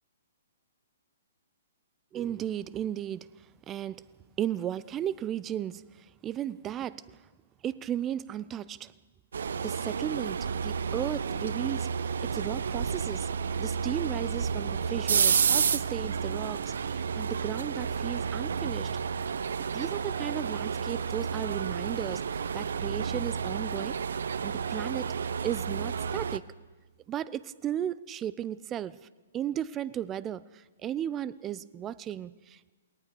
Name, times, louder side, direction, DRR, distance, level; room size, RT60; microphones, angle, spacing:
voice 1, 2.1-3.3 3.7-4.0 4.4-7.2 7.6-8.9 9.6-11.9 12.2-13.3 13.6-18.9 19.7-24.0 24.4-25.1 25.4-26.4 27.1-29.0 29.3-32.7, right 10 dB, 20° right, 19 dB, 0.6 m, -35 dB
sound 1, 9.3-26.4, right 6 dB, 70° right, 0.8 m, -31 dB
28.0 x 20.5 x 5.0 m, 1.3 s
figure-of-eight pair, 125°, 0 cm